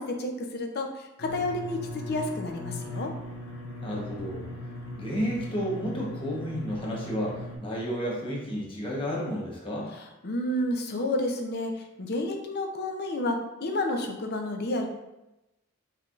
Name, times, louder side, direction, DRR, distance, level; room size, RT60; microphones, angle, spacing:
voice 1, 0.0-3.1 9.9-11.7 12.0-14.9, left 1 dB, 45° left, 3 dB, 0.6 m, -30 dB
sound 1, 1.2-7.6, left 1 dB, 70° left, 1.0 m, -38 dB
voice 2, 3.8-4.5 5.0-9.9, equal, 25° left, -4 dB, 1.0 m, -32 dB
5.7 x 3.4 x 2.5 m, 0.96 s
head